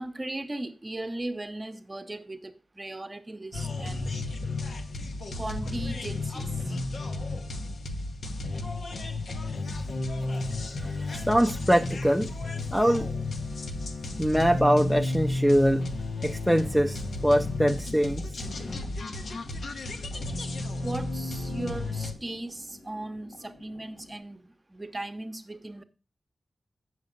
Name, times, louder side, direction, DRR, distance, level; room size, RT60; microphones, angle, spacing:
voice 1, 0.0-4.2 5.4-6.7 20.8-25.8, right 2 dB, 25° right, 0.8 m, -37 dB
sound 1, 3.5-22.1, left 2 dB, 85° left, 1.0 m, -32 dB
voice 2, 10.8-12.3 12.7-13.1 14.2-15.8 16.2-18.3, equal, ahead, 0.5 m, -23 dB
sound 2, 17.7-24.2, left 2 dB, 65° left, 1.7 m, -53 dB
8.1 x 6.5 x 5.2 m
wide cardioid pair, 115°, 0 cm